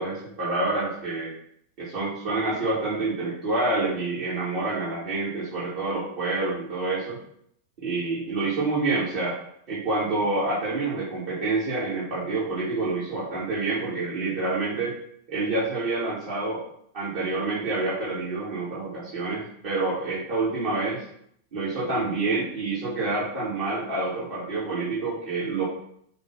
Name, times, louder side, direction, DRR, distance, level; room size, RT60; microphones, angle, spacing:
voice 1, 0.0-1.3 1.8-7.2 7.8-9.4 9.7-14.9 15.3-16.6 16.9-21.0 21.5-25.6, right 3 dB, 45° right, -10 dB, 3.1 m, -27 dB
6.5 x 3.6 x 5.8 m, 0.68 s
figure-of-eight pair, 90°, 0 cm